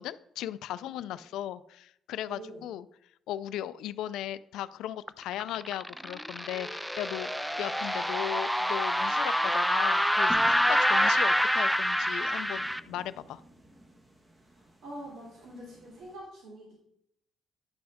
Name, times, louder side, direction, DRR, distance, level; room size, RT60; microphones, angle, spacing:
voice 1, 0.0-2.8 3.3-7.3 7.6-13.4, left 12 dB, 90° left, 15 dB, 0.4 m, -37 dB
voice 2, 0.8-1.2 2.2-2.6 14.4-16.7, right 1 dB, 80° right, -4 dB, 2.9 m, -46 dB
sound 1, 5.1-12.8, equal, ahead, 0.3 m, -27 dB
sound 2, 10.3-16.2, equal, 20° right, 1.5 m, -50 dB
10.5 x 6.1 x 3.6 m, 0.76 s
cardioid pair, 115°, 0 cm